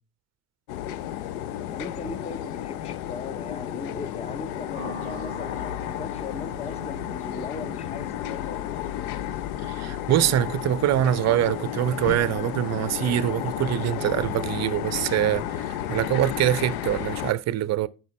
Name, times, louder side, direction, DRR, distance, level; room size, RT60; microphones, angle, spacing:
sound 1, 0.7-17.3, left 11 dB, 70° left, 0.7 m, -32 dB
voice 1, 1.7-8.7, left 4 dB, 15° left, 0.7 m, -38 dB
sound 2, 4.7-13.2, left 1 dB, 90° left, 3.8 m, -46 dB
sound 3, 5.0-9.4, left 2 dB, 55° left, 3.7 m, -49 dB
voice 2, 9.7-17.9, right 12 dB, 35° right, 0.6 m, -24 dB
9.2 x 6.1 x 3.1 m
hypercardioid pair, 65°, 45 cm